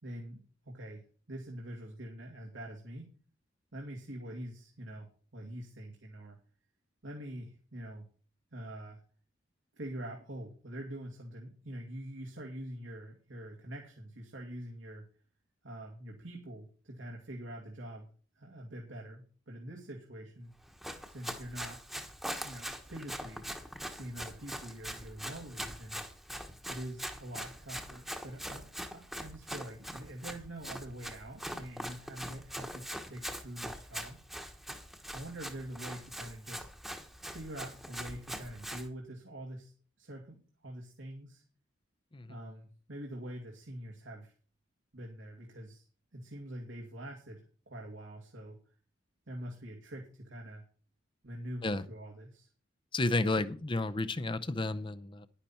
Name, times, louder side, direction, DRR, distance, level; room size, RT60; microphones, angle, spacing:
voice 1, 0.0-3.1 3.7-6.4 7.0-8.1 8.5-9.0 9.7-15.1 15.6-18.1 18.3-20.5 21.1-21.8 22.4-23.5 23.9-26.0 26.7-34.2 35.1-36.7 37.3-41.4 42.3-44.3 44.9-45.9 46.1-48.6 49.3-50.6 51.2-52.5, right 1 dB, 90° right, 2.2 m, -45 dB
Run, 20.6-38.9, equal, ahead, 1.2 m, -43 dB
voice 2, 52.9-55.3, left 2 dB, 25° left, 0.6 m, -32 dB
10.5 x 9.9 x 4.4 m
head